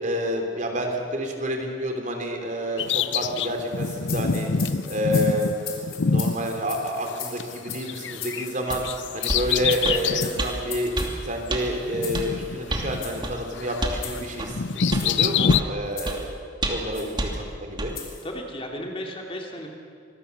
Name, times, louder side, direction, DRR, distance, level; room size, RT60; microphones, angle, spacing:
voice 1, 0.0-4.5 4.9-5.6 6.0-8.8 9.1-10.9 11.2-16.3 16.7-17.9, equal, 40° right, 3 dB, 3.6 m, -29 dB
Bird vocalization bird call bird song, 2.8-7.4 7.7-10.4 10.9-11.0 11.9-13.3 13.6-15.6, left 5 dB, 75° left, 0.7 m, -26 dB
sound 1, 3.7-11.1 12.0-12.3 12.9-13.2 14.0-14.3 14.8-15.2 16.0-16.3 16.9-17.1 17.9-18.2, left 9 dB, 55° left, 4.5 m, -38 dB
sound 2, 8.7-8.8 9.3-9.5 9.8-10.0 10.4-10.5 11.0-11.1 11.5-11.6 12.1-12.3 12.7-12.9 13.2-13.4 13.8-14.0 14.4-14.5 14.9-15.1 15.5-15.7 16.1-16.2 16.6-16.9 17.2-17.3 17.8-17.9, right 1 dB, 25° right, 2.6 m, -28 dB
voice 2, 18.2-19.7, equal, 30° left, 1 dB, 2.8 m, -34 dB
25.5 x 21.0 x 7.0 m, 2.4 s
head